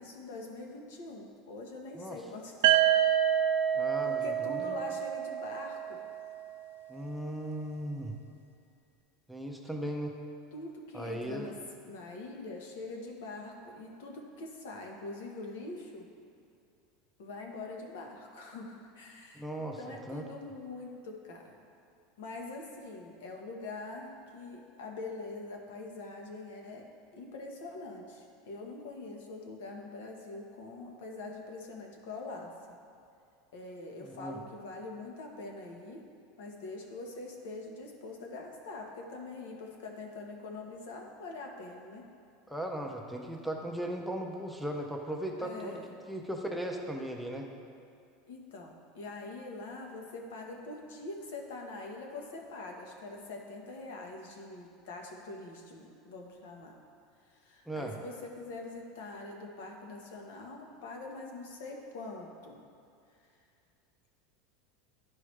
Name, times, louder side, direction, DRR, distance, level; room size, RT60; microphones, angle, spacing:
voice 1, 0.0-2.7 3.1-3.4 4.0-6.0 10.5-11.5 11.9-16.1 17.2-19.4 19.8-21.5 22.2-26.8 27.1-32.8 33.5-36.0 36.4-42.0 45.4-45.9 48.3-56.7 57.3-62.6, left 3 dB, 85° left, 1 dB, 1.1 m, -44 dB
sound 1, 2.6-6.5, right 11 dB, 70° right, 0.4 m, -28 dB
voice 2, 3.7-4.8 6.9-8.2 9.3-10.2 10.9-11.5 19.3-20.2 34.0-34.4 42.5-45.8 46.1-47.5 57.7-58.0, right 1 dB, ahead, 0 dB, 0.4 m, -37 dB
11.0 x 4.8 x 3.2 m, 2.5 s
supercardioid pair, 170°, 0 cm